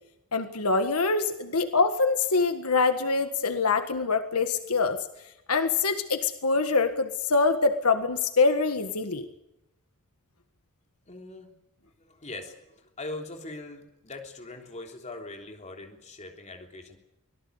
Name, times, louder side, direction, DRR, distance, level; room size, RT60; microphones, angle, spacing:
voice 1, 0.3-5.0 5.5-9.3, left 4 dB, 80° left, 8 dB, 1.6 m, -24 dB
voice 2, 11.1-11.5 12.0-12.6 13.0-17.0, left 2 dB, 30° left, 4 dB, 3.3 m, -41 dB
25.0 x 18.0 x 8.1 m, 0.88 s
head